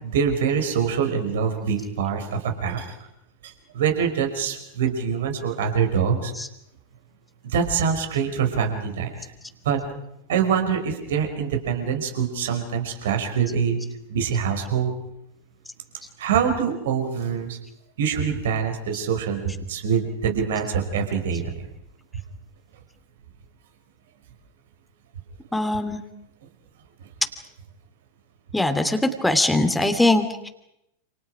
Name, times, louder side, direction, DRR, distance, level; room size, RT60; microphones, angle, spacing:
voice 1, 0.0-2.9 3.4-6.3 7.4-9.2 9.7-9.8 10.3-13.8 14.1-14.9 16.2-17.6 18.0-21.7, right 7 dB, 60° right, 5 dB, 5.4 m, -24 dB
voice 2, 25.5-26.0 28.5-30.5, left 2 dB, 5° left, 8 dB, 2.9 m, -21 dB
29.0 x 28.5 x 5.0 m, 0.82 s
figure-of-eight pair, 90°, 0 cm